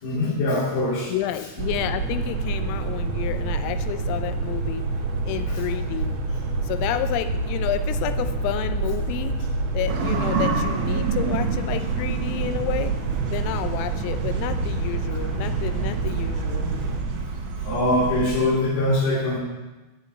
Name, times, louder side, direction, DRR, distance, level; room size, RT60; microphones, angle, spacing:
voice 1, 0.0-1.1 5.5-5.6 17.6-19.4, left 1 dB, 55° left, -7 dB, 4.2 m, -23 dB
voice 2, 1.1-4.8 5.3-6.2 6.6-9.5 9.7-13.0 13.3-16.7, left 12 dB, 90° left, 10 dB, 3.4 m, -30 dB
sound 1, 1.6-17.0, right 3 dB, 60° right, 3.1 m, -27 dB
sound 2, 9.9-18.5, right 5 dB, 80° right, 1.8 m, -29 dB
9.0 x 8.3 x 8.5 m, 1.1 s
omnidirectional pair, 5.8 m